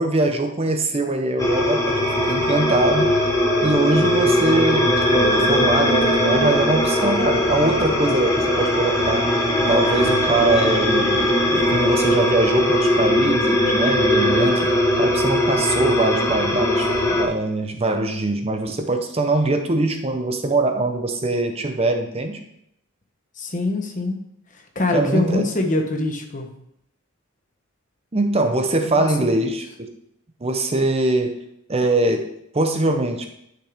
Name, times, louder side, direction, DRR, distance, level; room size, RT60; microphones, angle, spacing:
voice 1, 0.0-3.2 3.6-9.3 9.7-14.7 15.0-22.4 24.9-25.4 28.1-29.9 30.4-31.4 31.7-33.3, right 2 dB, 30° right, 5 dB, 0.7 m, -22 dB
sound 1, 1.4-17.2, left 1 dB, 15° left, 1.2 m, -20 dB
voice 2, 23.4-24.2 24.5-26.5 28.9-29.1, left 2 dB, 35° left, 4 dB, 1.1 m, -23 dB
10.0 x 6.0 x 3.5 m, 0.75 s
head